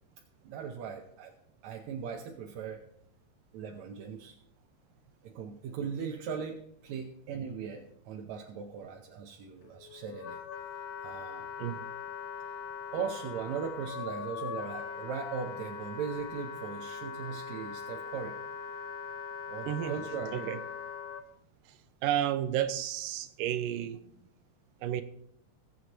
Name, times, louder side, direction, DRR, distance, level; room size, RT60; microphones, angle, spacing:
voice 1, 0.4-1.3 1.6-2.8 3.5-4.4 5.2-10.4 11.0-11.5 12.9-18.4 19.5-20.5, right 6 dB, 70° right, 3 dB, 1.8 m, -39 dB
Wind instrument woodwind instrument, 9.6-21.2, left 6 dB, 65° left, 1.6 m, -41 dB
voice 2, 19.7-20.0 20.3-20.6 22.0-24.1 24.8-25.0, right 11 dB, 85° right, 11 dB, 2.3 m, -31 dB
21.5 x 8.1 x 3.0 m, 0.72 s
omnidirectional pair, 3.9 m